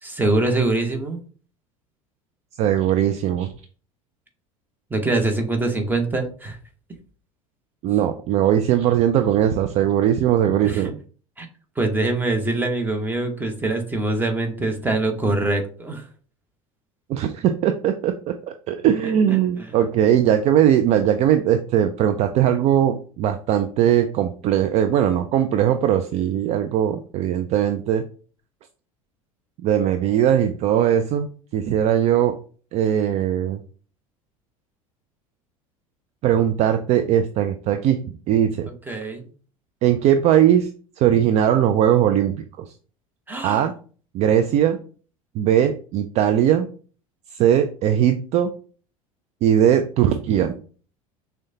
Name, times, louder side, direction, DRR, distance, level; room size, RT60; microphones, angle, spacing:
voice 1, 0.0-1.2 4.9-6.6 10.6-10.9 11.4-11.5 11.8-16.1 38.7-39.3 43.3-43.7, right 2 dB, 10° right, 4 dB, 1.0 m, -24 dB
voice 2, 2.6-3.5 7.8-11.0 17.1-18.4 18.7-28.0 29.6-32.4 32.7-33.6 36.2-38.7 39.8-40.7 41.0-42.7 43.4-43.7 44.1-44.8 45.3-46.7 47.3-48.5 49.4-50.6, right 10 dB, 40° right, 8 dB, 0.4 m, -19 dB
6.1 x 2.2 x 2.7 m, 0.41 s
figure-of-eight pair, 75°, 18 cm